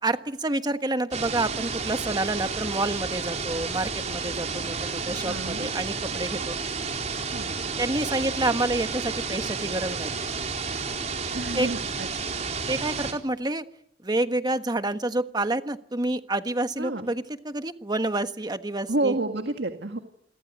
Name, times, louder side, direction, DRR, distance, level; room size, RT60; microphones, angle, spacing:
voice 1, 0.0-6.5 7.8-10.1 11.5-11.7 12.7-13.6 14.0-19.1, right 2 dB, 25° right, 9 dB, 1.4 m, -28 dB
sound 1, 1.1-13.1, right 4 dB, 40° right, 4.2 m, -31 dB
voice 2, 5.3-5.8 7.3-7.5 11.3-12.3 16.8-17.1 18.9-20.0, right 2 dB, 65° right, 5 dB, 2.0 m, -29 dB
28.5 x 22.0 x 9.4 m, 0.76 s
head